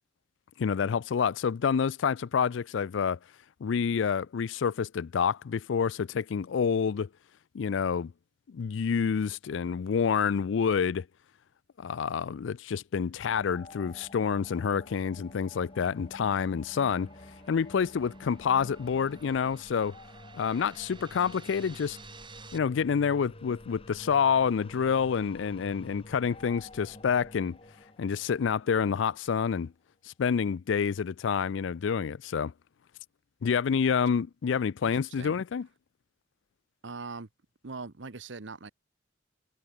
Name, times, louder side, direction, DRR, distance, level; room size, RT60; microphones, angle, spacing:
voice 1, 0.6-3.2 3.6-7.1 7.5-8.1 8.5-11.1 11.8-17.1 17.5-20.0 20.3-22.0 22.5-27.6 28.0-29.7 30.2-32.5 33.4-35.7, left 6 dB, 75° left, 0.4 m, -28 dB
sound 1, 13.3-29.5, left 1 dB, 30° left, 3.0 m, -50 dB
sound 2, 14.9-22.6, right 5 dB, 25° right, 3.6 m, -54 dB
voice 2, 34.8-35.4 36.8-37.3 37.6-38.7, right 4 dB, 75° right, 1.0 m, -41 dB
head